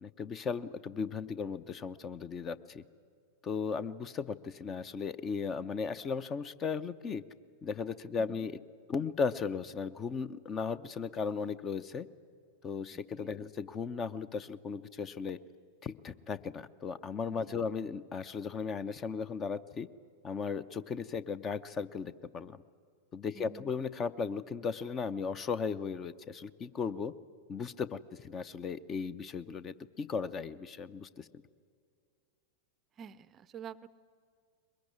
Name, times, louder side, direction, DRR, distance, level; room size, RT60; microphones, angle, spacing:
voice 1, 0.0-2.8 3.4-7.2 7.6-8.6 8.9-12.1 12.6-15.4 15.8-19.9 20.2-22.6 23.1-27.1 27.5-31.3, left 5 dB, 25° left, 17 dB, 0.7 m, -36 dB
voice 2, 23.3-23.7 33.0-33.9, right 8 dB, 30° right, 18 dB, 0.6 m, -48 dB
22.0 x 21.0 x 9.7 m, 2.2 s
figure-of-eight pair, 90°, 0 cm